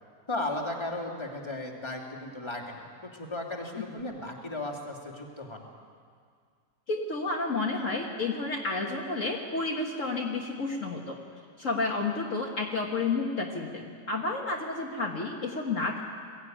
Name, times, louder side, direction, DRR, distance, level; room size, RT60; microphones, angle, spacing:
voice 1, 0.3-5.7, left 2 dB, 15° left, -1 dB, 2.5 m, -36 dB
voice 2, 6.9-11.2 11.6-16.0, left 3 dB, 55° left, -1 dB, 1.9 m, -31 dB
22.5 x 15.0 x 9.3 m, 2.1 s
omnidirectional pair, 1.7 m